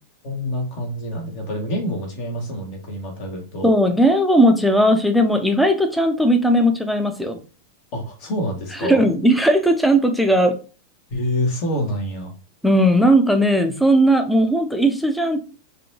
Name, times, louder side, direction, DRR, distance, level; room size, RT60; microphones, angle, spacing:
voice 1, 0.2-3.7 7.9-9.1 11.1-12.3, equal, 45° left, 0 dB, 1.7 m, -27 dB
voice 2, 3.6-7.4 8.8-10.6 12.6-15.4, equal, ahead, 7 dB, 0.6 m, -17 dB
5.1 x 2.8 x 2.8 m, 0.36 s
figure-of-eight pair, 90°, 0 cm